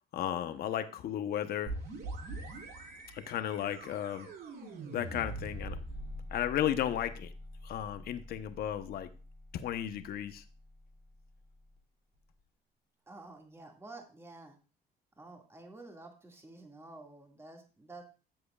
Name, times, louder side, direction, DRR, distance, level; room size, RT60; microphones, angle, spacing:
voice 1, 0.1-1.7 3.1-4.3 4.9-5.8 6.3-7.3 7.6-9.1 9.5-10.4, left 10 dB, 65° left, 0.9 m, -34 dB
sound 1, 1.7-11.2, right 1 dB, 65° right, 2.6 m, -44 dB
voice 2, 13.1-14.6 15.2-18.0, right 2 dB, 15° right, 2.1 m, -50 dB
13.5 x 7.7 x 2.4 m
cardioid pair, 110°, 17 cm